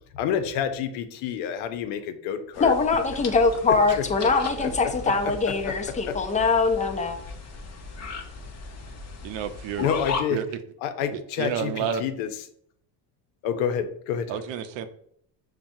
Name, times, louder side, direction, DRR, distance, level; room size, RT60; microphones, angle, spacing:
voice 1, 0.1-2.7 4.6-4.7 5.6-5.7 6.1-6.2 9.8-10.4 10.8-12.5 13.4-14.4, left 8 dB, 85° left, 8 dB, 0.7 m, -28 dB
sound 1, 2.5-10.2, left 4 dB, 35° left, 0.7 m, -37 dB
voice 2, 2.6-7.2, left 4 dB, 15° left, 6 dB, 0.4 m, -23 dB
voice 3, 9.2-9.9 10.3-10.4 11.1-12.0 14.3-14.9, right 8 dB, 65° right, 9 dB, 0.6 m, -30 dB
5.8 x 2.2 x 2.6 m, 0.66 s
supercardioid pair, 85°, 48 cm